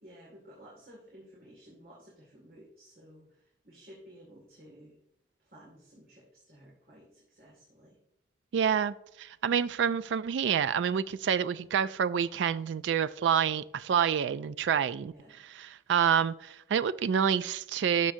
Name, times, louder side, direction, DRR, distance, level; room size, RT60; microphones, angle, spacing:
voice 1, 0.0-5.0 5.4-8.0 15.1-15.4, equal, 50° right, -4 dB, 2.2 m, -54 dB
voice 2, 8.5-15.1 15.6-18.1, right 7 dB, 85° right, 15 dB, 0.3 m, -28 dB
13.0 x 6.2 x 2.7 m, 0.82 s
head